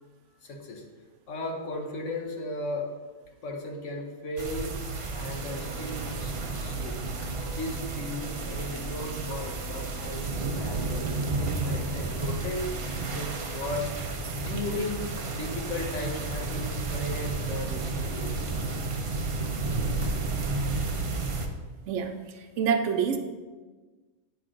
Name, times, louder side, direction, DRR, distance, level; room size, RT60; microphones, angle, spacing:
voice 1, 0.4-0.8 1.3-2.9 3.4-4.8 5.1-6.3 6.6-18.6, left 2 dB, 80° left, 1 dB, 1.3 m, -36 dB
sound 1, 4.4-21.5, right 3 dB, 55° right, 0.3 m, -32 dB
sound 2, 5.5-13.8, right 4 dB, 35° left, 1.4 m, -47 dB
voice 2, 21.9-23.2, right 7 dB, 85° right, 7 dB, 0.9 m, -27 dB
9.1 x 3.2 x 3.7 m, 1.3 s
omnidirectional pair, 1.2 m